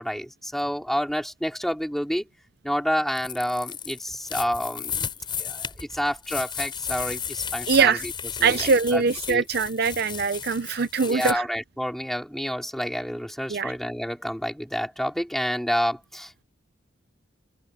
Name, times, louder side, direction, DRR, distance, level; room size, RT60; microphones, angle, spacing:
voice 1, 0.0-2.3 2.6-5.1 5.4-8.1 8.4-9.0 9.3-9.4 11.0-16.4, equal, ahead, 4.9 m, -29 dB
sound 1, 3.1-11.3, left 7 dB, 25° left, 4.9 m, -34 dB
voice 2, 7.7-8.0 8.4-11.5 13.5-13.7, right 5 dB, 50° right, 0.6 m, -22 dB
open air
head